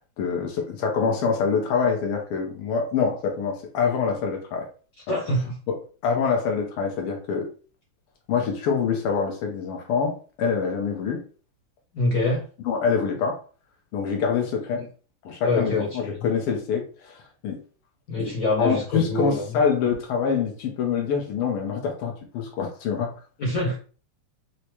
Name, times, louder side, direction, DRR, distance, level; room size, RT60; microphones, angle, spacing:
voice 1, 0.2-4.7 5.1-5.2 5.7-5.8 6.0-7.5 8.3-11.2 12.6-13.4 13.9-14.9 15.2-17.6 18.2-18.3 18.6-23.1, left 6 dB, 85° left, 1 dB, 1.7 m, -25 dB
voice 2, 5.1-5.5 11.9-12.5 14.7-14.9 15.4-16.2 18.1-19.6 23.4-23.8, left 2 dB, 70° left, -3 dB, 0.8 m, -25 dB
4.8 x 2.0 x 2.8 m, 0.38 s
omnidirectional pair, 2.4 m